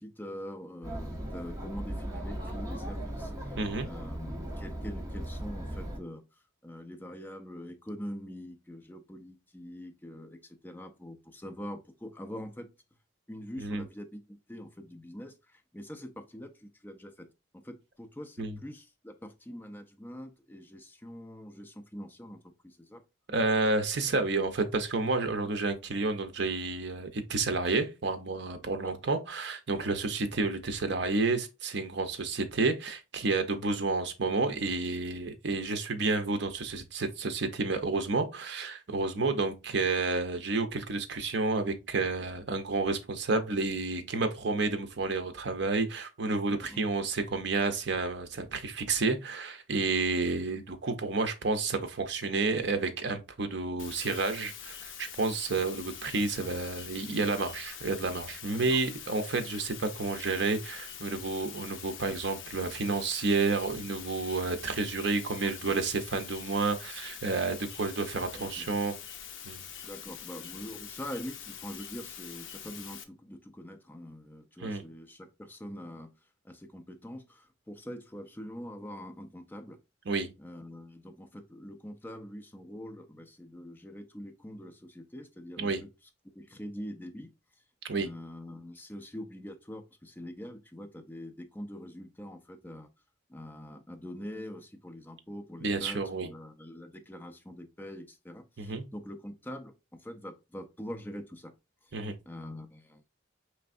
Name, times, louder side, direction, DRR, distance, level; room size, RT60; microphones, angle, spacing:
voice 1, 0.0-6.2 6.6-12.7 13.3-17.3 17.5-23.0 28.8-28.9 46.6-46.8 58.5-58.8 62.1-62.2 65.4-65.8 68.3-68.7 69.8-76.1 76.4-79.8 80.4-85.9 86.3-87.3 87.9-92.9 93.3-101.5 101.8-102.0 102.3-103.0, equal, 10° left, 0.4 m, -44 dB
Chatter, 0.8-6.0, right 1 dB, 20° right, 0.8 m, -38 dB
voice 2, 3.6-3.9 13.6-13.8 18.4-18.6 23.3-69.0 69.5-69.7 74.6-74.8 80.1-80.3 85.6-85.8 87.8-88.1 95.6-96.3 98.6-98.8 101.9-102.2, right 3 dB, 60° right, 0.6 m, -30 dB
sound 1, 53.8-73.0, left 8 dB, 70° left, 0.5 m, -45 dB
4.5 x 3.2 x 2.5 m
head